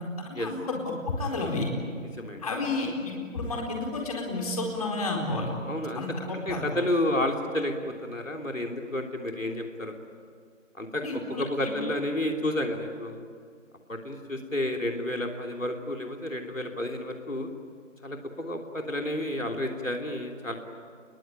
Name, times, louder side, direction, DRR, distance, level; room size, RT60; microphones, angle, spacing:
voice 1, 0.2-0.8 1.1-1.7 2.4-5.5 6.0-6.7 11.0-11.7, left 2 dB, 30° left, 0 dB, 4.4 m, -31 dB
voice 2, 5.7-6.0 6.3-10.0 10.8-11.0 11.4-13.2 13.9-17.5 18.0-20.5, left 1 dB, 80° left, 2 dB, 3.1 m, -31 dB
28.5 x 22.0 x 9.2 m, 2.1 s
figure-of-eight pair, 155°, 39 cm